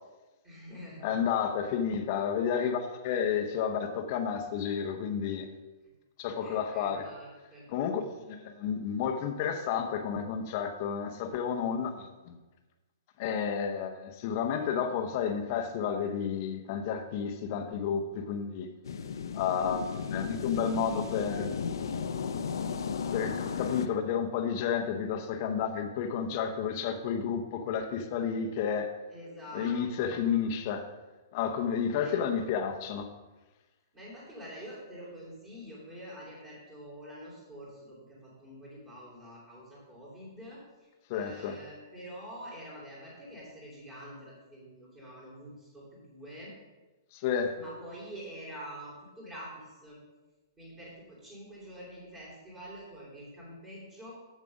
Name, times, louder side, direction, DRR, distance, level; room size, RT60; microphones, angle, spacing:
voice 1, 0.4-1.1 6.4-7.6 29.1-30.3 32.0-32.2 33.9-46.5 47.5-50.0 50.6-54.1, equal, 20° right, -8 dB, 3.0 m, -46 dB
voice 2, 1.0-5.5 6.2-7.1 7.7-12.4 13.2-18.7 19.3-21.6 23.1-28.9 29.5-30.8 31.3-33.1 41.1-41.6 47.1-47.6, left 7 dB, 35° left, 6 dB, 0.8 m, -31 dB
sound 1, 18.8-23.9, left 6 dB, 75° left, 0.6 m, -34 dB
7.3 x 7.3 x 5.2 m, 1.2 s
hypercardioid pair, 170°, 2 cm